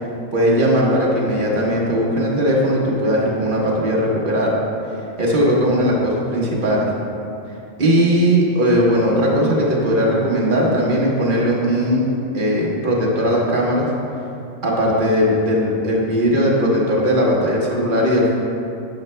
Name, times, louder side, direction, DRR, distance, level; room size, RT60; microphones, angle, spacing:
voice 1, 0.3-4.6 5.2-6.9 7.8-12.1 12.3-13.9 14.6-18.3, equal, 40° right, -4 dB, 1.4 m, -18 dB
11.5 x 7.9 x 2.2 m, 2.6 s
omnidirectional pair, 1.4 m